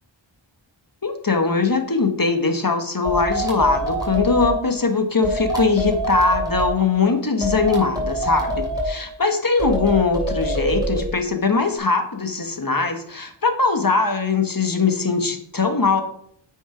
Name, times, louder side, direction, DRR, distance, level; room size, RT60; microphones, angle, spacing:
voice 1, 1.0-16.0, left 4 dB, 45° left, 6 dB, 1.3 m, -21 dB
sound 1, 3.0-4.6 5.2-6.7 7.4-8.9 9.6-11.1, right 1 dB, 10° right, 3.1 m, -25 dB
9.1 x 5.3 x 5.0 m, 0.66 s
wide cardioid pair, 50°, 48 cm